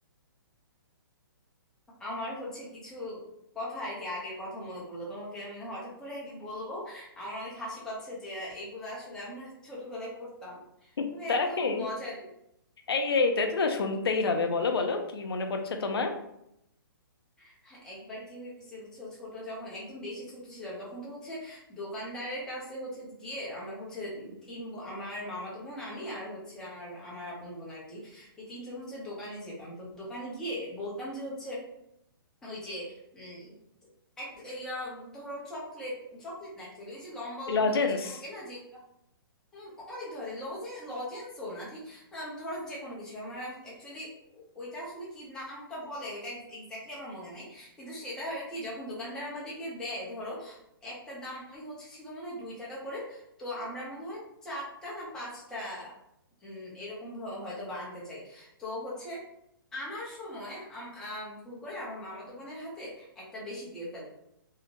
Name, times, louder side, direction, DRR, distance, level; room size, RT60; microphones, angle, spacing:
voice 1, 2.0-3.2 3.5-12.3 17.4-31.6 32.4-33.6 34.2-37.7 38.0-38.8 39.5-55.9 56.4-59.2 59.7-64.1, left 1 dB, 5° left, -7 dB, 0.6 m, -40 dB
voice 2, 11.3-11.9 12.9-16.1 37.5-38.2, left 4 dB, 90° left, 5 dB, 0.5 m, -27 dB
2.7 x 2.1 x 2.8 m, 0.79 s
hypercardioid pair, 160°, 12 cm